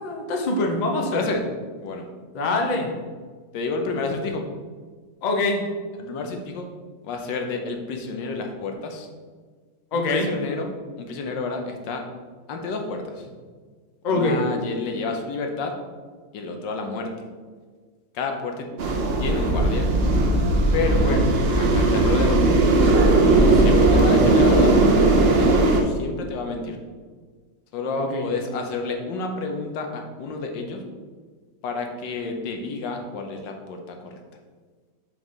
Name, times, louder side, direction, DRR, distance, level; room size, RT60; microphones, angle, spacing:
voice 1, 0.0-1.2 2.3-2.9 5.2-5.6 9.9-10.3 14.0-14.4 21.0-21.3 27.9-28.3, left 2 dB, 45° left, 1 dB, 0.5 m, -24 dB
voice 2, 1.1-1.4 1.8-2.1 3.5-4.4 6.0-6.7 7.0-9.1 9.9-12.0 12.5-13.3 14.1-15.7 16.3-17.1 18.1-18.7 19.2-19.9 20.7-21.1 21.6-22.4 23.3-24.7 25.3-26.8 27.7-30.8 31.6-34.2, left 3 dB, 85° left, 4 dB, 1.5 m, -30 dB
sound 1, 18.8-25.8, right 2 dB, 75° right, 0.5 m, -18 dB
4.7 x 3.8 x 5.4 m, 1.5 s
omnidirectional pair, 1.9 m